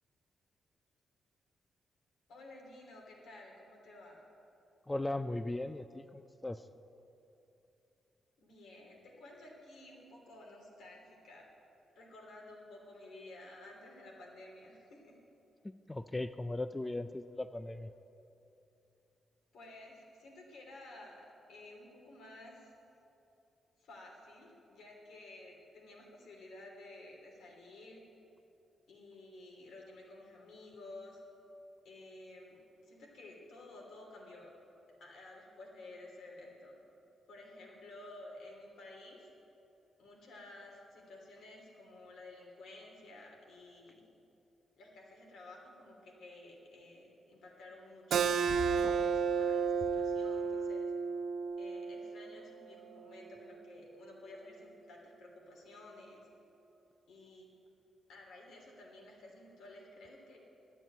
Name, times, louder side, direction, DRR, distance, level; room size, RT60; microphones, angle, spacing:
voice 1, 2.3-4.2 8.4-11.5 11.9-15.1 19.5-21.2 21.5-22.7 23.8-28.0 28.9-31.2 31.8-34.5 35.0-36.7 37.3-39.3 40.0-44.0 44.8-50.9 51.6-56.3 57.1-57.5 58.1-60.4, left 2 dB, 80° left, -1 dB, 3.1 m, -53 dB
voice 2, 4.9-6.7 15.6-17.9, left 2 dB, 10° left, 10 dB, 0.3 m, -38 dB
Keyboard (musical), 48.1-53.3, right 6 dB, 65° right, 0.5 m, -33 dB
sound 1, 48.5-49.2 49.7-50.7, left 5 dB, 50° left, 0.8 m, -46 dB
12.5 x 9.0 x 9.3 m, 2.9 s
wide cardioid pair, 145°, 0 cm